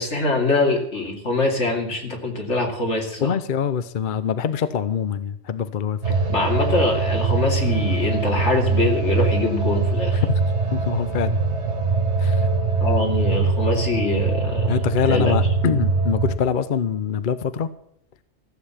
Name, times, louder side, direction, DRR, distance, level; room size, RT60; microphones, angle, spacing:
voice 1, 0.0-3.3 6.3-10.2 12.8-14.8 15.1-15.4, left 2 dB, 90° left, 1 dB, 3.0 m, -23 dB
voice 2, 3.2-6.0 10.3-10.4 10.7-11.4 12.2-12.5 14.7-17.7, left 7 dB, 50° left, 13 dB, 0.8 m, -24 dB
sound 1, 6.0-16.3, right 4 dB, 80° right, 1.8 m, -22 dB
15.0 x 7.8 x 8.4 m, 0.69 s
omnidirectional pair, 1.2 m